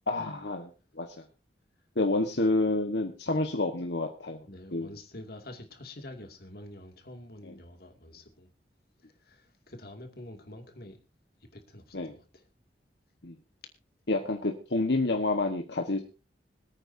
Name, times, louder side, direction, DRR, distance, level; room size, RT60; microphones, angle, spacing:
voice 1, 0.1-0.7 1.0-1.2 2.0-4.4 4.7-5.0 7.4-7.5 11.9-12.2 13.2-13.3 14.1-16.0, left 2 dB, 80° left, 1.4 m, -29 dB
voice 2, 4.5-8.5 9.2-11.0 11.5-12.4, left 1 dB, 60° left, 2.4 m, -47 dB
26.0 x 9.0 x 2.7 m
head